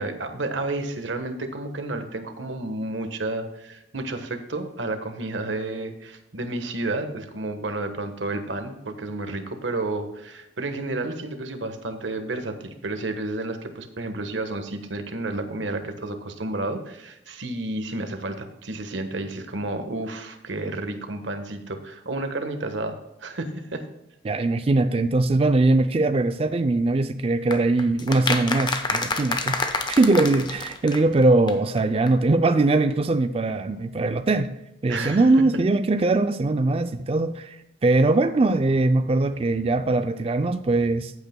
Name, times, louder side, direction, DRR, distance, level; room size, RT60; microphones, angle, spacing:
voice 1, 0.0-23.9 34.9-35.3, right 2 dB, 85° right, 7 dB, 1.3 m, -31 dB
voice 2, 24.2-34.5 34.8-41.1, right 2 dB, 30° right, 9 dB, 0.4 m, -21 dB
sound 1, 27.5-31.2 31.5-31.6 31.8-31.9 32.1-32.2, left 3 dB, 25° left, 0.8 m, -27 dB
14.5 x 8.2 x 2.2 m, 0.92 s
head